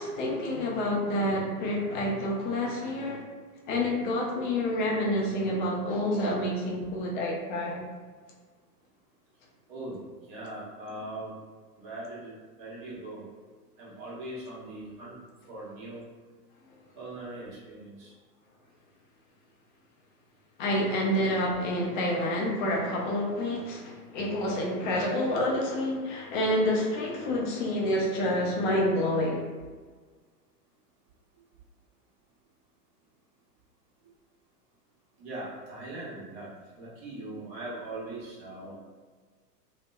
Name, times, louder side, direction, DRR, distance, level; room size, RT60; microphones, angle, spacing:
voice 1, 0.0-3.2 3.7-7.8 20.6-29.4, left 1 dB, 30° left, -2 dB, 0.5 m, -28 dB
voice 2, 9.7-11.4 11.7-13.3 13.8-15.2 15.5-16.0 16.9-18.2 31.3-31.4 34.0-34.1 35.2-38.7, right 2 dB, 35° right, -7 dB, 1.1 m, -41 dB
2.9 x 2.0 x 2.2 m, 1.5 s
hypercardioid pair, 110°, 49 cm